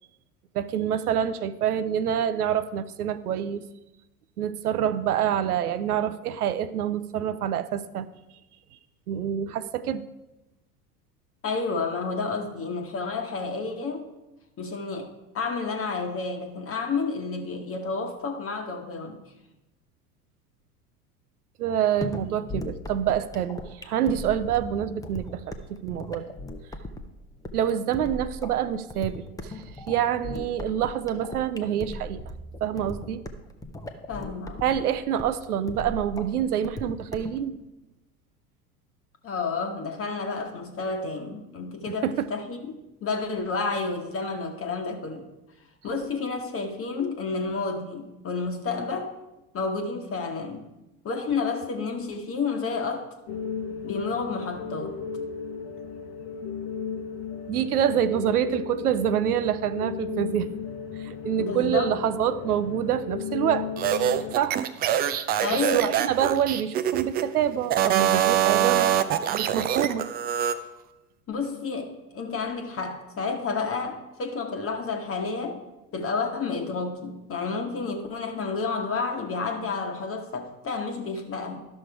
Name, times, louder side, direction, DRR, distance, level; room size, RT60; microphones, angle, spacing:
voice 1, 0.5-3.6 4.4-8.1 9.1-10.0 21.6-25.5 25.8-26.3 27.5-32.2 32.6-33.2 34.6-37.6 42.0-42.3 57.5-60.5 61.0-63.7 64.3-64.6 65.5-68.9 69.2-70.1, right 9 dB, 75° right, 13 dB, 0.6 m, -26 dB
voice 2, 11.4-14.0 14.6-19.2 34.1-34.6 39.2-42.7 43.0-45.3 45.8-49.1 49.5-50.6 51.0-53.1 53.8-55.0 61.4-61.9 65.4-65.9 68.6-68.8 71.3-75.6 75.9-81.7, left 4 dB, 30° left, 4 dB, 1.2 m, -30 dB
sound 1, 22.0-37.4, left 1 dB, 10° left, 0.7 m, -38 dB
sound 2, 53.3-64.3, left 6 dB, 45° left, 1.0 m, -35 dB
sound 3, 63.8-67.2 67.6-70.6, right 10 dB, 20° right, 0.4 m, -24 dB
11.5 x 6.3 x 4.6 m, 0.97 s
figure-of-eight pair, 80°, 45 cm